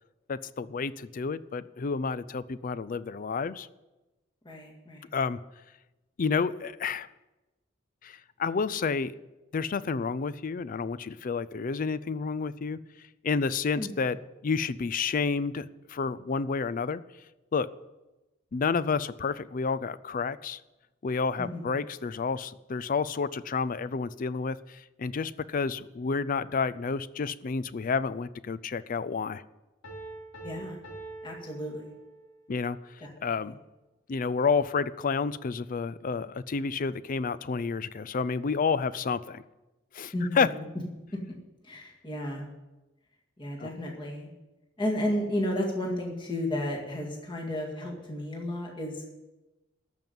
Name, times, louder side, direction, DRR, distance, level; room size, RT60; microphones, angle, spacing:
voice 1, 0.3-3.7 5.1-5.4 6.2-7.1 8.0-9.1 9.5-12.8 13.2-14.2 14.4-17.0 17.5-17.7 18.5-20.6 21.0-29.4 32.5-32.8 33.2-33.6 34.1-39.4 39.9-40.5 43.6-43.7, left 5 dB, 45° left, 16 dB, 0.4 m, -30 dB
voice 2, 4.5-5.1 13.8-13.9 21.4-21.7 30.4-30.8 31.2-31.8 33.0-33.1 40.1-40.6 41.6-42.4 43.4-44.3 44.8-49.2, left 1 dB, 25° left, -1 dB, 2.0 m, -33 dB
Piano, 29.8-32.4, right 2 dB, 85° left, 3.0 m, -44 dB
13.5 x 5.4 x 9.1 m, 1.0 s
head